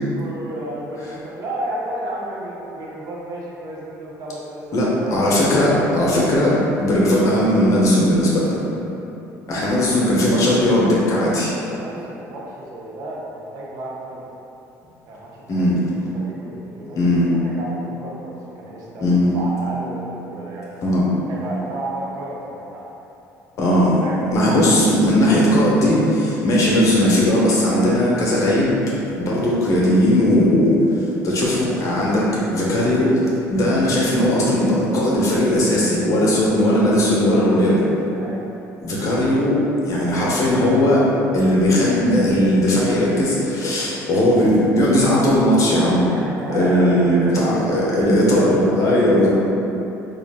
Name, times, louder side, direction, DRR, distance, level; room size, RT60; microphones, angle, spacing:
voice 1, 0.2-5.3 9.7-9.9 11.8-14.3 15.1-20.8 21.3-22.9 24.0-24.4 38.2-38.5 46.1-48.6 49.1-49.3, right 1 dB, 65° right, -4 dB, 0.6 m, -32 dB
voice 2, 4.7-8.6 9.5-11.5 15.5-15.8 16.9-17.3 19.0-19.3 20.8-21.0 23.6-23.9 24.3-28.8 29.2-32.2 32.5-33.2 33.5-37.8 38.8-41.1 41.3-46.0 46.5-49.3, left 1 dB, 55° left, -6 dB, 0.9 m, -18 dB
3.5 x 2.4 x 3.5 m, 3.0 s
cardioid pair, 95°, 7 cm